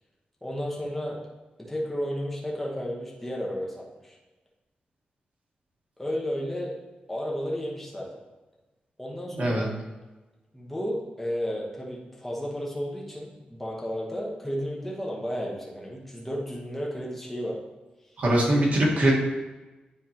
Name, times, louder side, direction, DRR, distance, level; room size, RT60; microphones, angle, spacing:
voice 1, 0.4-1.2 1.6-4.2 6.0-6.8 7.1-8.2 9.0-9.7 10.5-17.6, equal, 5° left, -4 dB, 1.1 m, -33 dB
voice 2, 9.3-9.7 18.2-19.1, right 1 dB, 55° right, -3 dB, 1.6 m, -22 dB
9.8 x 4.5 x 2.9 m, 1.2 s
wide cardioid pair, 170°, 3 cm